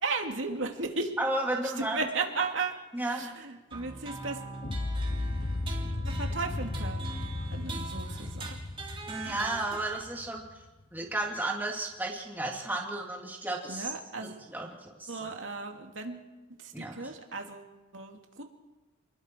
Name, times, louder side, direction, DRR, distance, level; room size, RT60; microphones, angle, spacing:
voice 1, 0.0-1.1 1.8-2.7 3.0-4.4 6.1-7.1 7.5-8.5 9.3-9.6 13.7-14.4 15.1-16.3 16.6-18.4, right 3 dB, 85° right, 3 dB, 2.6 m, -35 dB
voice 2, 1.2-2.0 2.9-3.3 9.1-10.4 10.9-13.9 14.2-15.3 16.7-17.1, right 2 dB, 10° right, -1 dB, 2.6 m, -33 dB
sound 1, 3.7-10.1, right 3 dB, 30° right, 3.2 m, -42 dB
sound 2, 4.6-10.7, left 2 dB, 40° left, 0.8 m, -35 dB
28.5 x 20.5 x 4.6 m, 1.2 s
head